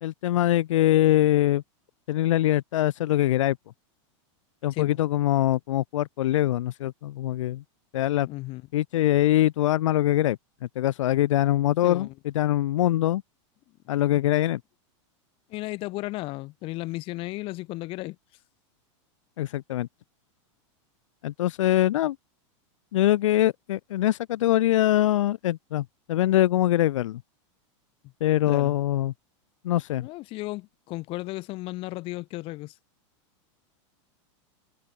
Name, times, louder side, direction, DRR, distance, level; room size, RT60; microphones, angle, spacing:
voice 1, 0.0-1.6 2.1-3.6 4.6-7.6 7.9-8.3 8.7-10.4 10.8-13.2 13.9-14.6 19.4-19.9 21.2-22.2 22.9-27.2 28.2-29.1 29.6-30.1, left 13 dB, 80° left, 2.1 m, -23 dB
voice 2, 8.2-8.6 11.8-12.1 15.5-18.2 28.5-28.8 30.0-32.7, left 20 dB, 35° left, 6.1 m, -34 dB
supercardioid pair, 165°, 16 cm